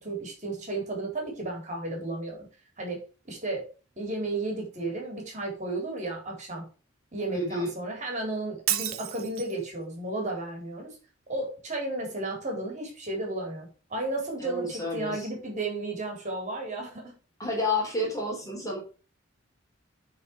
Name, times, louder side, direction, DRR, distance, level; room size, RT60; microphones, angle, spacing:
voice 1, 0.0-2.5 2.8-3.0 3.3-3.6 4.0-6.7 7.1-11.0 11.3-17.1, right 2 dB, 35° right, 1 dB, 3.9 m, -33 dB
voice 2, 7.3-7.7 14.4-15.3 17.4-18.8, left 1 dB, 15° left, -1 dB, 3.3 m, -30 dB
Shatter, 8.7-9.7, right 12 dB, 90° right, 1.0 m, -30 dB
9.8 x 4.9 x 4.8 m, 0.33 s
head